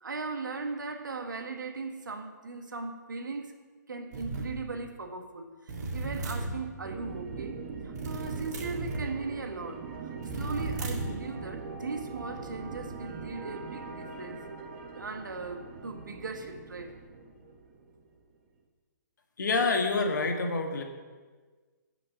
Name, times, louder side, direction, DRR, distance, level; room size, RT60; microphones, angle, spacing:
voice 1, 0.0-3.5 3.9-9.8 10.3-14.4 14.9-16.9, right 4 dB, 90° right, 5 dB, 1.4 m, -38 dB
sound 1, 4.1-4.5 5.7-6.6 7.9-9.1 10.2-11.2, right 2 dB, 65° right, 2.1 m, -35 dB
sound 2, 6.8-18.2, right 4 dB, 40° right, 1.4 m, -42 dB
voice 2, 19.4-20.8, left 3 dB, 75° left, 4 dB, 1.6 m, -27 dB
7.5 x 6.1 x 7.1 m, 1.4 s
hypercardioid pair, 145°, 10 cm